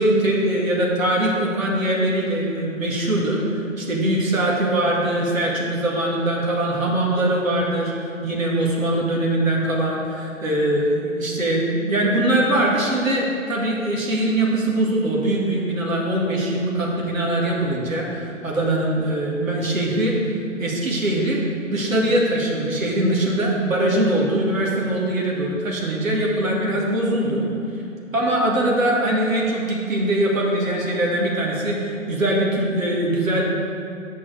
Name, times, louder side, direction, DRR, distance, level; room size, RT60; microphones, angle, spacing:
voice 1, 0.0-7.9 8.2-20.2 20.6-21.4 21.7-27.4 28.1-33.4, right 1 dB, 80° right, -3 dB, 2.1 m, -22 dB
7.4 x 5.9 x 6.3 m, 2.4 s
figure-of-eight pair, 135°, 40 cm